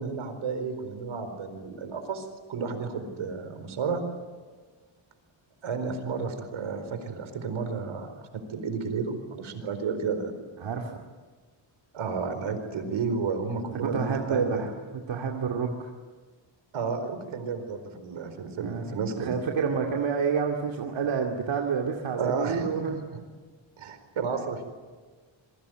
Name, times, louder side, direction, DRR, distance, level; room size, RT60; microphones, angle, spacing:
voice 1, 0.0-4.0 5.6-8.1 8.3-10.3 11.9-14.6 16.7-19.4 22.2-22.7 23.8-24.6, right 5 dB, 90° right, 8 dB, 4.6 m, -32 dB
voice 2, 10.6-11.0 13.8-14.7 15.1-15.9 18.6-18.9 19.2-23.0, right 6 dB, 70° right, 1 dB, 2.5 m, -28 dB
27.5 x 23.0 x 9.3 m, 1.4 s
wide cardioid pair, 150°, 47 cm